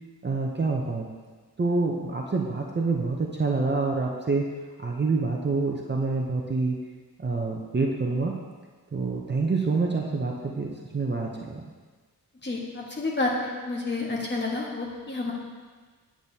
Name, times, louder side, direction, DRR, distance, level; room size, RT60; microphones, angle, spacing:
voice 1, 0.2-1.1 1.6-4.5 4.8-6.8 7.2-8.4 8.9-11.6, right 3 dB, 30° right, -1 dB, 0.6 m, -27 dB
voice 2, 12.4-15.3, left 2 dB, 30° left, -3 dB, 1.3 m, -29 dB
8.7 x 8.2 x 2.7 m, 1.4 s
wide cardioid pair, 150°, 38 cm